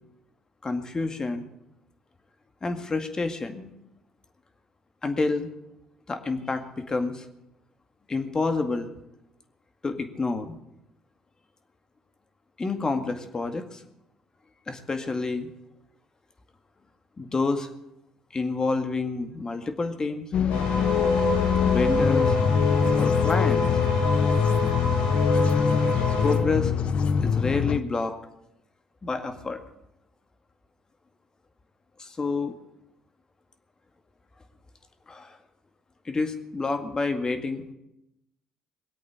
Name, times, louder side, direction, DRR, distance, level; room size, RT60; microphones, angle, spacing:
voice 1, 0.6-1.5 2.6-3.7 5.0-5.5 6.1-7.2 8.1-8.9 9.8-10.6 12.6-13.8 14.7-15.5 17.2-17.7 18.3-20.2 21.6-22.5 23.0-23.7 26.2-26.7 27.2-28.2 29.0-29.6 32.0-32.5 35.1-35.4 36.1-37.6, left 3 dB, 30° left, 7 dB, 2.0 m, -28 dB
sound 1, 20.3-27.8, left 6 dB, 55° left, 0.7 m, -24 dB
sound 2, 20.5-26.3, left 3 dB, 85° left, 7.8 m, -26 dB
20.0 x 8.5 x 8.2 m, 0.86 s
hypercardioid pair, 55°, 2 cm